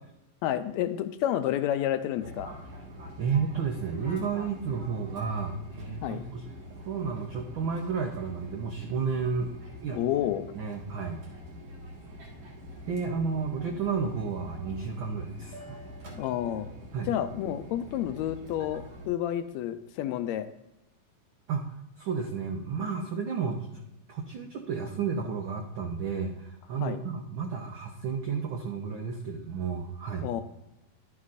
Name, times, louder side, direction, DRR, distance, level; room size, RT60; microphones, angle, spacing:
voice 1, 0.4-2.5 6.0-6.2 9.9-10.5 16.2-16.7 17.1-20.5 26.8-27.0 30.2-30.4, left 11 dB, 80° left, 10 dB, 1.8 m, -30 dB
Fixed-wing aircraft airplane, 2.2-19.1, equal, 55° right, 2.7 m, -45 dB
voice 2, 3.2-6.4 6.8-10.0 10.5-11.2 12.9-15.8 16.9-17.1 21.5-21.7 22.0-23.8 24.1-30.3, right 5 dB, 80° right, 2 dB, 1.1 m, -32 dB
11.5 x 9.6 x 2.5 m, 0.87 s
omnidirectional pair, 3.4 m